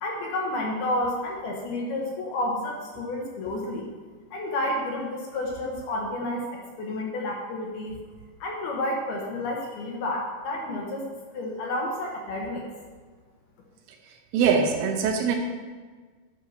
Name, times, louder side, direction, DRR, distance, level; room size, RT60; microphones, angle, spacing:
voice 1, 0.0-3.9 4.3-8.0 8.4-11.1 11.3-12.6, left 1 dB, 65° left, -1 dB, 2.7 m, -30 dB
voice 2, 14.3-15.4, right 6 dB, 90° right, 3 dB, 3.8 m, -22 dB
11.5 x 5.7 x 6.5 m, 1.4 s
omnidirectional pair, 5.6 m